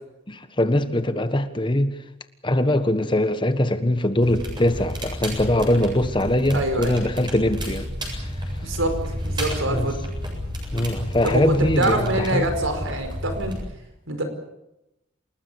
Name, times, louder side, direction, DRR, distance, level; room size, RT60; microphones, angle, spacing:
voice 1, 0.3-1.9 2.4-8.2 9.7-9.9 10.7-12.4, left 1 dB, 25° left, 1.3 m, -22 dB
Crackle, 4.2-13.6, equal, 20° right, 7.8 m, -31 dB
voice 2, 6.5-7.0 8.6-9.0 9.2-10.0 11.2-13.6 14.1-14.2, right 1 dB, 80° right, 5.1 m, -25 dB
29.0 x 19.5 x 7.1 m
head